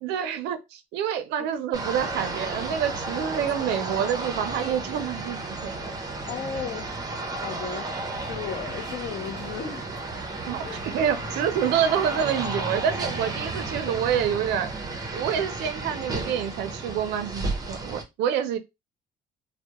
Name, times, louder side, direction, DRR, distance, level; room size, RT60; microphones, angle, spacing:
voice 1, 0.0-5.8 10.5-10.7 10.9-14.7 15.1-18.6, right 8 dB, 85° right, 0.4 m, -27 dB
sound 1, 1.7-18.0, right 3 dB, 20° right, 0.5 m, -33 dB
voice 2, 5.9-10.0 10.6-10.9, left 7 dB, 55° left, 0.5 m, -36 dB
sound 2, 9.8-15.3, left 2 dB, 20° left, 0.7 m, -44 dB
2.2 x 2.0 x 2.8 m
cardioid pair, 110°, 17 cm